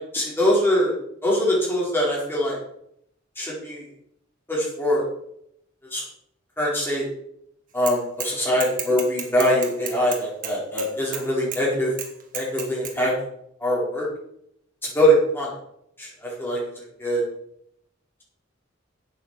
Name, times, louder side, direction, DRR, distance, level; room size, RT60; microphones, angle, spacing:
voice 1, 0.1-0.9 1.2-2.6 3.4-3.8 4.5-5.0 5.9-6.0 6.6-7.1 7.7-11.9 12.3-13.1 13.6-14.1 14.9-15.5 16.0-17.2, equal, 10° left, -5 dB, 4.5 m, -23 dB
Bicycle / Mechanisms, 7.9-8.3 8.6-11.2 11.5-11.6 12.0-12.9, right 8 dB, 40° right, 1.8 m, -32 dB
8.4 x 8.4 x 6.8 m, 0.75 s
head